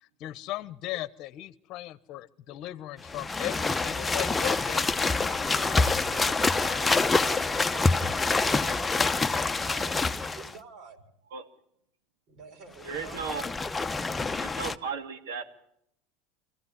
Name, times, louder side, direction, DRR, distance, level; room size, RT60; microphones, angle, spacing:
voice 1, 0.2-5.4, left 15 dB, 55° left, 17 dB, 1.0 m, -37 dB
sound 1, 3.0-10.5 12.8-14.8, left 3 dB, 15° left, 0.9 m, -26 dB
voice 2, 6.1-9.1 9.6-10.1 10.4-11.0 12.3-13.3, right 4 dB, 55° right, 7 dB, 4.3 m, -47 dB
voice 3, 12.8-13.5 14.4-15.4, right 6 dB, 85° right, 7 dB, 2.6 m, -35 dB
24.5 x 15.5 x 10.0 m, 0.75 s
supercardioid pair, 100°, 0 cm